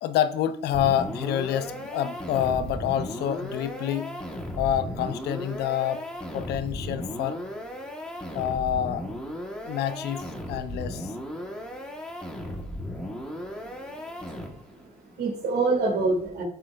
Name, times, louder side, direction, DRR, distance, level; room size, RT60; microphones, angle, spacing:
voice 1, 0.0-4.1 4.6-6.0 6.3-7.4 8.3-9.1 9.6-11.1, left 10 dB, 75° left, 0.7 m, -27 dB
sound 1, 0.7-14.8, equal, 5° left, 1.4 m, -36 dB
voice 2, 13.6-14.0 14.3-16.4, right 3 dB, 70° right, 2.5 m, -28 dB
11.5 x 6.8 x 2.6 m
cardioid pair, 110°, 17 cm